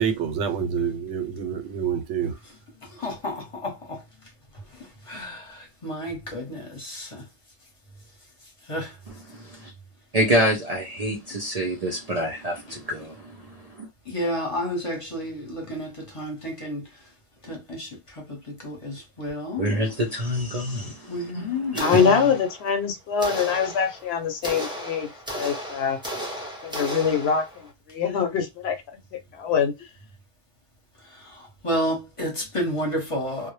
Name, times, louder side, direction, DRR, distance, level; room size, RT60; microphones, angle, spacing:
voice 1, 0.0-2.3, right 7 dB, 90° right, 0.9 m, -27 dB
voice 2, 3.0-4.0 5.1-7.2 8.7-8.9 14.1-16.8 17.5-19.7 21.1-22.2 31.2-33.5, equal, 30° left, 0.8 m, -31 dB
voice 3, 10.1-13.2 19.6-21.0 21.3-21.9, equal, 55° right, 0.4 m, -26 dB
sound 1, 21.7-22.8 23.2-27.7, equal, 5° right, 0.6 m, -35 dB
voice 4, 21.8-26.0 26.6-28.8 29.1-29.9, left 6 dB, 75° left, 0.8 m, -24 dB
2.1 x 2.0 x 3.0 m
omnidirectional pair, 1.1 m